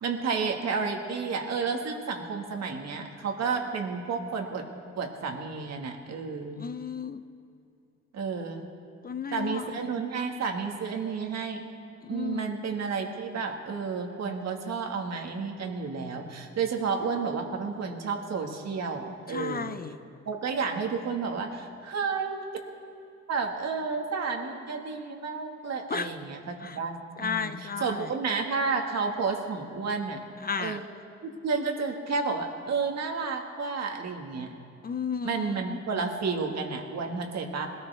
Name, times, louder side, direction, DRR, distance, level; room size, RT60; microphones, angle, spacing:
voice 1, 0.0-4.6 5.0-6.6 8.1-8.7 9.3-11.6 12.1-19.8 20.3-22.5 23.3-30.2 30.6-30.8 31.2-34.5 35.2-37.7, right 5 dB, 60° right, 3 dB, 1.9 m, -31 dB
voice 2, 6.6-7.2 9.0-9.7 12.0-12.6 19.3-20.0 25.9-26.1 26.6-26.8 27.2-28.1 30.4-30.8 34.8-35.8, left 6 dB, 30° left, 11 dB, 0.6 m, -33 dB
20.5 x 13.5 x 3.5 m, 2.6 s
cardioid pair, 90°, 30 cm